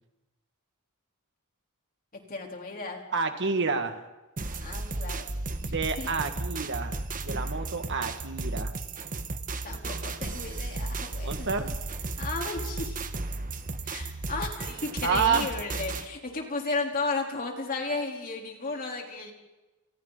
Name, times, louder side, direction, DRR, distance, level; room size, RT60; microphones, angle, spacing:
voice 1, 2.3-3.0 4.6-5.4 5.6-6.1 9.6-11.5 12.2-13.0 13.8-19.3, left 3 dB, 40° left, 1 dB, 4.0 m, -34 dB
voice 2, 3.1-4.0 5.7-8.7 11.2-11.8 15.0-15.5, right 5 dB, 55° right, 6 dB, 2.1 m, -29 dB
sound 1, 4.4-16.1, right 2 dB, 40° right, 1.3 m, -34 dB
29.5 x 28.0 x 4.2 m, 1.1 s
head